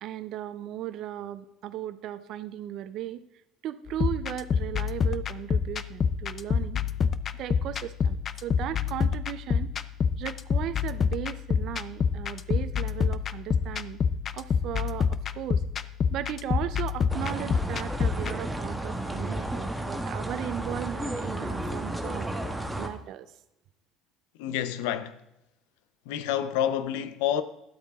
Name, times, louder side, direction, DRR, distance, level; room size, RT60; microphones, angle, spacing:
voice 1, 0.0-3.2 3.6-6.8 7.3-9.7 10.2-14.0 14.3-15.6 16.1-22.3 22.7-23.3, right 12 dB, 60° right, 0.7 m, -36 dB
sound 1, 3.9-18.3, left 6 dB, 40° left, 0.5 m, -28 dB
sound 2, 17.1-22.9, right 1 dB, 5° right, 1.3 m, -32 dB
voice 2, 24.4-25.2 26.1-27.4, left 10 dB, 85° left, 0.7 m, -28 dB
12.0 x 8.2 x 3.7 m
supercardioid pair, 95°, 0 cm